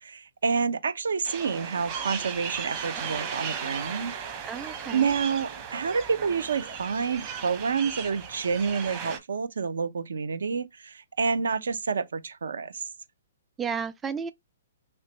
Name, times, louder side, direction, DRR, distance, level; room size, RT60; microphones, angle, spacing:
voice 1, 0.0-4.2 4.9-12.8, right 5 dB, 80° right, 0.6 m, -28 dB
sound 1, 1.2-9.2, right 7 dB, 30° right, 0.9 m, -36 dB
voice 2, 4.4-5.1 13.6-14.3, right 6 dB, 15° right, 0.3 m, -33 dB
3.2 x 2.9 x 3.0 m
hypercardioid pair, 140°, 0 cm